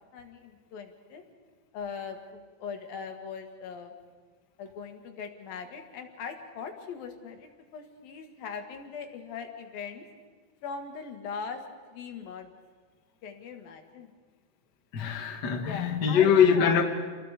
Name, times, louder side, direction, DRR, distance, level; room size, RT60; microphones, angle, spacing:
voice 1, 0.1-1.2 1.7-3.9 4.6-10.0 10.6-11.6 11.9-12.5 13.2-14.1 15.6-16.8, left 6 dB, 70° left, 3.5 m, -40 dB
voice 2, 14.9-16.8, left 7 dB, 40° left, 1.6 m, -23 dB
29.0 x 22.5 x 5.0 m
omnidirectional pair, 4.3 m